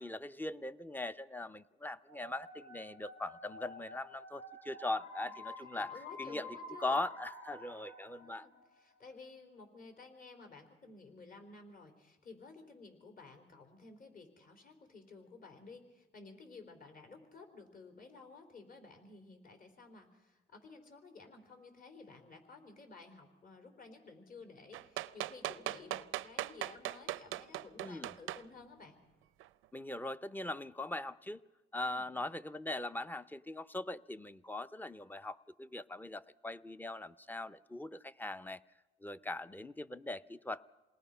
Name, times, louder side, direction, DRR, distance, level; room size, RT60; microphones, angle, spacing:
voice 1, 0.0-5.9 6.2-8.5 27.8-28.1 29.7-31.4 31.7-38.6 39.0-40.6, left 2 dB, 10° left, 13 dB, 0.6 m, -40 dB
sound 1, 2.1-8.9, left 1 dB, 70° left, 5.4 m, -50 dB
voice 2, 5.8-7.0 8.2-29.0 31.8-32.1, left 4 dB, 45° left, 5 dB, 4.3 m, -54 dB
sound 2, 24.7-28.4 29.4-29.5, right 15 dB, 85° right, 0.6 m, -39 dB
28.0 x 19.5 x 5.6 m, 1.2 s
cardioid pair, 90°, 20 cm